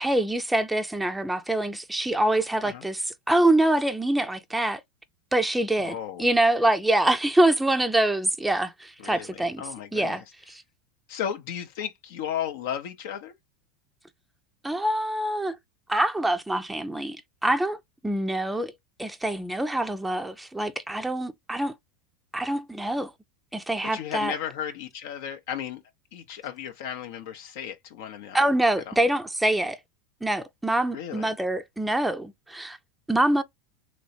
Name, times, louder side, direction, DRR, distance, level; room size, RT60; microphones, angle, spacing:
voice 1, 0.0-4.8 5.3-9.6 9.9-10.2 10.5-10.6 14.6-15.6 15.9-17.8 18.0-18.7 19.0-21.7 22.3-23.1 23.5-24.3 28.3-29.8 30.2-32.8 33.1-33.4, right 1 dB, 5° right, 0.5 m, -25 dB
voice 2, 5.8-6.3 9.0-10.2 11.1-13.3 23.9-25.8 26.1-28.5 28.9-29.0 30.9-31.3, left 9 dB, 65° left, 0.6 m, -34 dB
3.0 x 3.0 x 2.7 m
hypercardioid pair, 95°, 0 cm